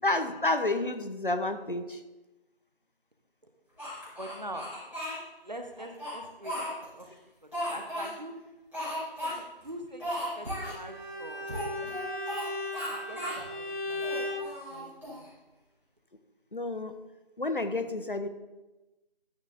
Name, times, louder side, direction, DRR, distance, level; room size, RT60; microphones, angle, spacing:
voice 1, 0.0-2.0 16.5-16.9 17.4-18.3, left 2 dB, 55° left, 9 dB, 1.0 m, -30 dB
Speech, 3.8-5.2 5.7-7.0 7.5-8.1 8.7-9.3 9.6-9.7 10.0-10.8 11.5-12.4 12.7-13.4 13.9-15.3, equal, ahead, 1.9 m, -36 dB
voice 2, 4.1-4.7 5.4-6.6 6.9-7.1 7.7-8.3 9.2-11.5 12.9-14.4 14.7-15.3, right 1 dB, 45° right, 5 dB, 1.1 m, -44 dB
Bowed string instrument, 10.8-14.5, left 2 dB, 25° left, 2.4 m, -36 dB
13.0 x 5.8 x 4.0 m, 1.1 s
figure-of-eight pair, 175°, 31 cm